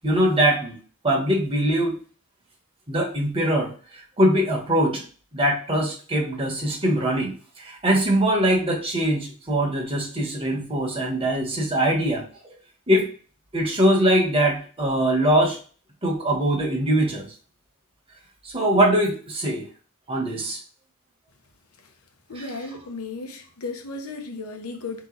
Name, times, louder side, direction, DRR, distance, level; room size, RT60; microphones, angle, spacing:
voice 1, 0.0-0.8 1.0-2.0 2.9-5.0 5.3-12.2 12.9-13.1 13.5-15.6 16.0-17.3 18.4-19.6 20.1-20.6 22.4-22.5, right 1 dB, 25° right, 1.2 m, -22 dB
voice 2, 22.3-25.1, left 3 dB, 85° left, 0.9 m, -35 dB
3.9 x 3.0 x 3.9 m
head